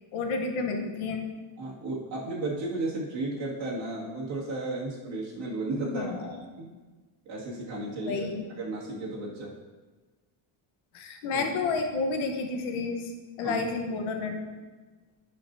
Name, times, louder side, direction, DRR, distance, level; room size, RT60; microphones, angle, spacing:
voice 1, 0.1-1.2 5.8-6.4 8.1-8.4 10.9-13.1 13.4-14.5, left 4 dB, 75° left, 4 dB, 1.1 m, -30 dB
voice 2, 1.6-6.2 6.6-6.7 7.3-9.5 11.3-11.4 13.4-13.6, right 2 dB, 65° right, -5 dB, 2.2 m, -34 dB
10.5 x 5.2 x 2.7 m, 1.3 s
cardioid pair, 150°, 49 cm